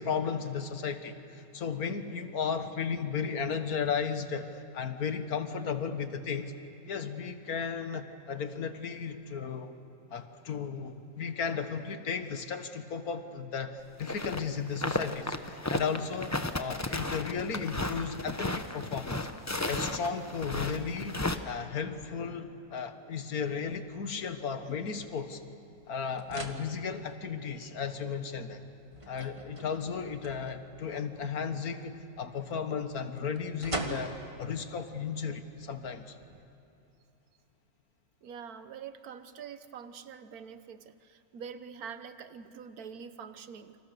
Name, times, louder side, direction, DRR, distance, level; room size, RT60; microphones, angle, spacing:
voice 1, 0.0-6.5 6.8-9.8 10.1-19.3 19.7-21.2 21.5-25.4 25.9-28.6 29.1-36.2, left 6 dB, 80° left, 9 dB, 1.9 m, -35 dB
sound 1, 14.0-14.4 14.7-21.4, left 2 dB, 15° left, 0.8 m, -34 dB
sound 2, 23.5-36.4, right 2 dB, 20° right, 1.7 m, -46 dB
voice 2, 38.2-43.8, right 7 dB, 80° right, 11 dB, 1.5 m, -45 dB
29.0 x 26.5 x 6.8 m, 2.8 s
omnidirectional pair, 1.5 m